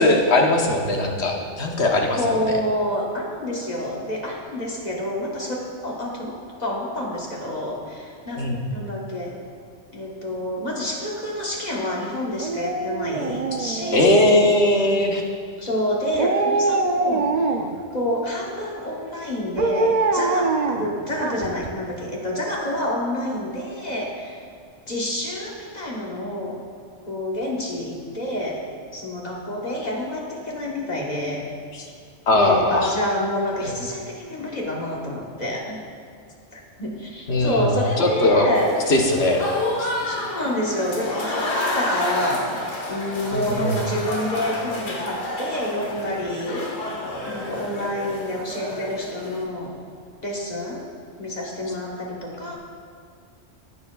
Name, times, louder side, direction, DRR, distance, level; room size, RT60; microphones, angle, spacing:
voice 1, 0.0-2.2 2.5-2.6 8.4-8.6 13.9-15.2 31.7-31.9 32.3-32.9 37.3-38.5 38.9-39.4 39.7-39.9 43.3-43.8, left 2 dB, 60° left, 1 dB, 1.3 m, -19 dB
voice 2, 2.2-9.4 9.9-14.2 15.6-17.5 17.9-24.4 24.9-26.6 27.1-28.6 28.9-31.4 32.3-35.8 36.5-38.7 40.1-42.6 42.9-46.7 47.3-49.8 50.2-50.9 51.2-52.6, left 1 dB, 35° left, -3 dB, 1.3 m, -28 dB
Dog, 12.4-14.4 16.1-17.8 19.6-21.7 22.0-22.1, right 3 dB, 65° right, 0.4 m, -24 dB
Applause / Crowd, 38.5-49.4, left 1 dB, 75° left, 1.7 m, -30 dB
15.5 x 6.9 x 2.3 m, 2.2 s
omnidirectional pair, 1.3 m